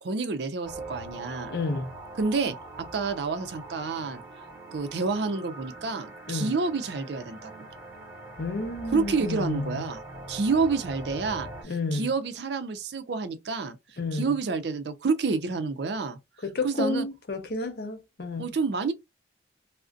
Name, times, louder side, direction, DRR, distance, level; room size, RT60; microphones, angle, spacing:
voice 1, 0.0-1.6 2.2-4.2 4.7-7.5 8.9-10.0 10.3-11.5 11.9-13.8 14.1-16.2 16.6-17.1 18.4-18.9, right 4 dB, 70° right, 0.5 m, -28 dB
sound 1, 0.6-11.6, right 2 dB, 15° right, 0.9 m, -43 dB
voice 2, 1.5-1.9 6.3-6.5 8.4-9.8 11.6-12.1 14.0-14.4 16.4-18.5, left 2 dB, 60° left, 0.6 m, -30 dB
2.4 x 2.1 x 2.4 m
head